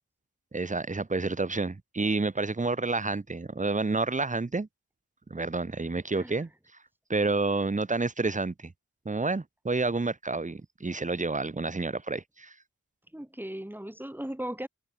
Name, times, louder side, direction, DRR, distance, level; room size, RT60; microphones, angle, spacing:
voice 1, 0.5-4.7 5.3-6.5 7.1-8.7 9.0-12.5, right 3 dB, 20° right, 1.1 m, -29 dB
voice 2, 13.1-14.7, right 1 dB, 5° right, 3.4 m, -37 dB
wide cardioid pair, 105°, 34 cm